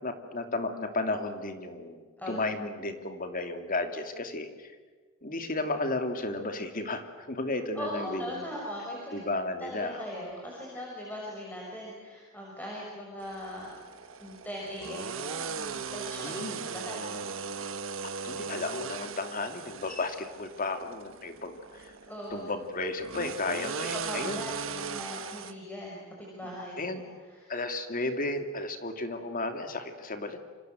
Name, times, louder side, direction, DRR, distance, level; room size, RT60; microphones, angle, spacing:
voice 1, 0.0-4.7 5.2-8.5 9.1-10.0 16.2-16.6 18.2-21.9 22.3-24.4 26.8-27.0 27.5-30.4, left 2 dB, 40° left, 7 dB, 2.7 m, -33 dB
voice 2, 7.7-9.2 9.6-13.7 14.1-17.3 22.1-22.4 23.5-27.5, left 1 dB, 10° left, -3 dB, 6.3 m, -40 dB
sound 1, 13.2-25.5, right 5 dB, 65° right, 1.4 m, -38 dB
28.5 x 26.5 x 7.9 m, 1.5 s
head